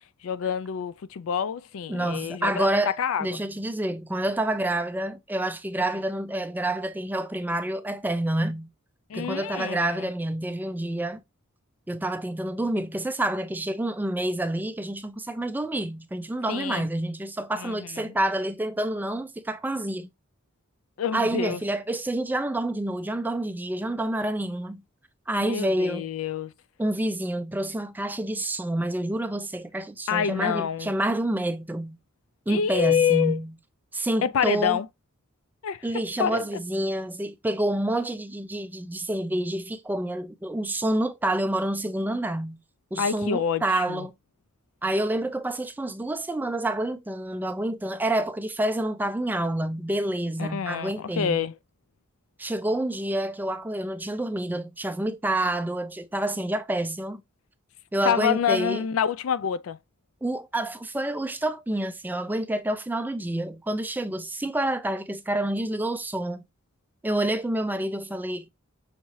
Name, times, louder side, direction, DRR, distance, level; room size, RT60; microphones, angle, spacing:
voice 1, 0.2-3.3 5.8-6.0 9.1-10.1 16.5-16.9 17.6-18.1 21.0-21.6 25.4-26.5 30.1-30.9 32.5-33.4 34.2-34.9 35.6-35.9 36.2-36.5 43.0-44.1 50.4-51.6 58.1-59.8, left 8 dB, 70° left, 0.4 m, -27 dB
voice 2, 1.9-8.7 9.1-11.2 11.9-20.1 21.1-24.8 25.3-26.1 26.8-32.0 32.5-33.5 33.9-34.8 35.8-42.6 42.9-44.1 44.8-51.5 52.4-57.2 57.9-58.8 60.2-66.4 67.0-68.5, right 1 dB, 10° right, 0.3 m, -28 dB
5.8 x 2.7 x 3.0 m
head